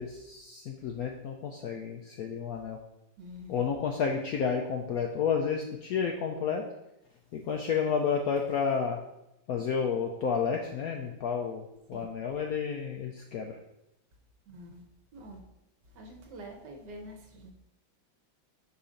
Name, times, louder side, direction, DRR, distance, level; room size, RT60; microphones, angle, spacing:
voice 1, 0.0-2.8 3.5-6.6 7.3-9.0 9.5-13.6, left 6 dB, 90° left, 3 dB, 0.8 m, -31 dB
voice 2, 3.2-3.7 11.9-12.1 14.5-14.8 15.1-15.4 15.8-17.5, equal, 60° right, 2 dB, 1.5 m, -46 dB
5.4 x 4.1 x 5.0 m, 0.87 s
omnidirectional pair, 2.2 m